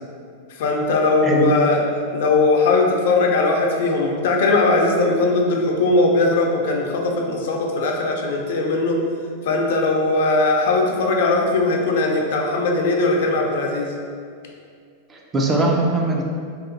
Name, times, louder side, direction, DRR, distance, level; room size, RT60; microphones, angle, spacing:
voice 1, 0.6-1.8 2.1-9.0 9.4-13.9, left 3 dB, 70° left, 0 dB, 0.5 m, -19 dB
voice 2, 15.1-16.2, right 2 dB, 20° right, -1 dB, 0.3 m, -20 dB
2.7 x 2.2 x 3.7 m, 2.2 s
supercardioid pair, 155°, 0 cm